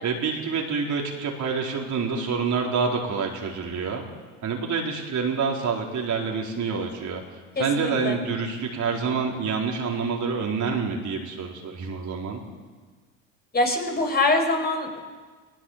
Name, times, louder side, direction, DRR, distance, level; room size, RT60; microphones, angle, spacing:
voice 1, 0.0-4.0 4.4-7.2 7.6-12.4, right 5 dB, 45° right, 0 dB, 4.3 m, -27 dB
voice 2, 7.5-8.2 13.5-15.0, left 2 dB, 25° left, 3 dB, 5.0 m, -24 dB
19.5 x 18.5 x 7.5 m, 1.4 s
hypercardioid pair, 75°, 41 cm